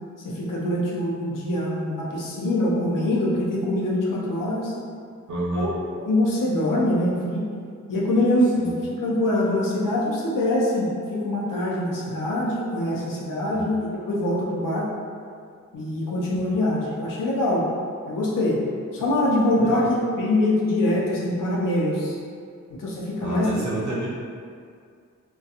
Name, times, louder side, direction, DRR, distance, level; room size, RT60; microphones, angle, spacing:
voice 1, 0.2-4.7 5.5-5.7 6.0-7.5 7.9-8.7 9.0-14.9 15.7-17.7 18.1-18.6 18.9-22.1 22.8-23.5, left 1 dB, 90° left, -5 dB, 0.6 m, -24 dB
voice 2, 5.3-5.7 8.6-8.7 13.5-13.7 19.6-19.8 23.2-24.1, right 2 dB, 70° right, -6 dB, 0.7 m, -29 dB
2.4 x 2.2 x 2.7 m, 2.2 s
cardioid pair, 60°, 31 cm